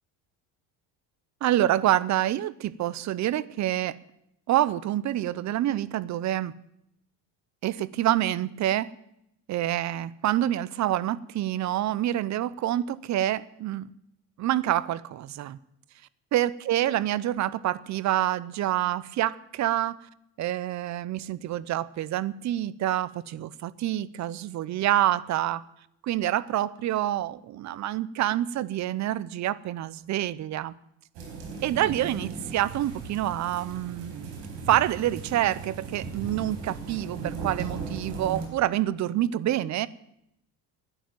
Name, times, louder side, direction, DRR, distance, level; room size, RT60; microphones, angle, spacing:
voice 1, 1.4-4.0 4.5-6.5 7.6-8.9 9.5-13.9 14.4-15.6 16.3-20.0 20.4-25.6 26.0-30.7 31.6-34.3 34.7-39.9, right 13 dB, 45° right, 19 dB, 0.7 m, -27 dB
sound 1, 31.1-38.5, right 4 dB, 75° right, 4.8 m, -37 dB
12.0 x 10.0 x 9.1 m, 0.79 s
cardioid pair, 120°, 40 cm